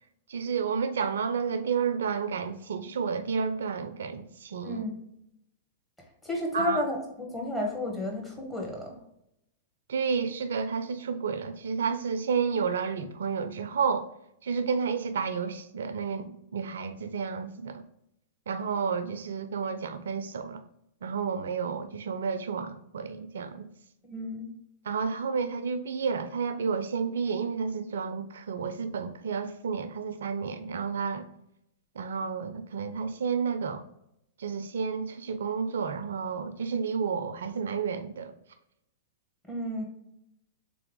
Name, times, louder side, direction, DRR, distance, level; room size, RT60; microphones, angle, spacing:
voice 1, 0.3-4.8 6.5-6.8 9.9-14.1 14.4-17.8 18.5-20.6 21.0-23.7 24.9-31.2 32.0-33.8 34.4-38.3, right 6 dB, 75° right, 10 dB, 0.4 m, -31 dB
voice 2, 6.2-8.9 24.0-24.5 39.5-39.8, left 1 dB, 10° left, -1 dB, 1.5 m, -32 dB
3.4 x 3.4 x 3.7 m, 0.80 s
hypercardioid pair, 110°, 0 cm